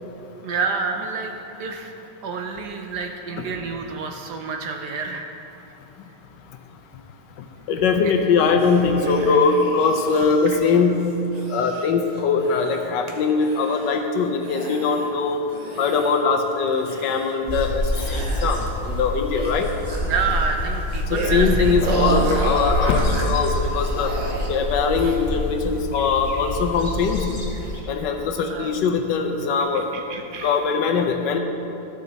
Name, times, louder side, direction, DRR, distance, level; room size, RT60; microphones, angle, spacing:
voice 1, 0.4-1.9 2.2-5.3 8.0-8.1 9.2-9.4 10.5-10.6 20.0-21.8 28.4-28.7 29.7-30.6, right 5 dB, 70° right, 4 dB, 1.1 m, -29 dB
voice 2, 7.7-11.1 11.5-15.4 15.8-17.8 18.1-19.7 21.1-24.1 24.5-27.4 27.9-29.8 30.4-31.4, left 5 dB, 70° left, 5 dB, 1.3 m, -21 dB
sound 1, 8.6-13.1 13.4-14.1 14.4-15.1 15.5-16.4 16.7-17.7 17.9-18.9 19.2-24.5 24.9-25.2, right 2 dB, 35° right, 0.7 m, -33 dB
sound 2, 17.5-27.8, equal, 25° left, 2.0 m, -26 dB
13.5 x 6.5 x 4.0 m, 2.9 s
omnidirectional pair, 2.1 m